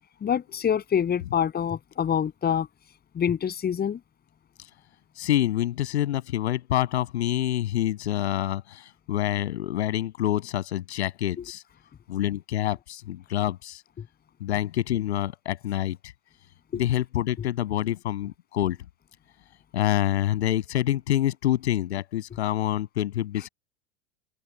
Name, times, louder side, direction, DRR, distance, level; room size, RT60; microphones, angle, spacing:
voice 1, 0.2-2.7 3.1-4.0 16.7-16.8, left 8 dB, 25° left, 7.4 m, -26 dB
voice 2, 5.2-11.6 12.1-13.8 14.4-16.0 16.7-18.8 19.7-23.5, left 13 dB, 65° left, 6.8 m, -27 dB
figure-of-eight pair, 85°, 35 cm